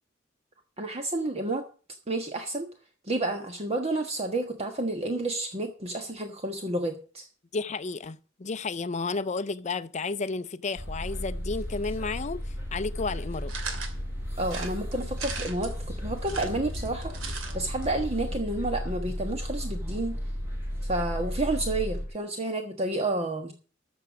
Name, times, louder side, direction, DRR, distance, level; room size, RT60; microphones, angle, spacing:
voice 1, 0.8-1.6 2.1-2.7 3.0-7.3 14.4-17.2 17.5-20.2 20.8-23.5, right 2 dB, 30° right, 1.4 m, -30 dB
voice 2, 7.5-12.4 12.7-13.5, left 4 dB, 35° left, 0.5 m, -32 dB
sound 1, 10.7-22.1, equal, 10° right, 4.9 m, -34 dB
sound 2, 13.5-13.9 14.5-15.7 16.2-17.5 17.8-17.9 18.1-18.2, right 5 dB, 90° right, 2.6 m, -37 dB
13.5 x 7.0 x 6.1 m
head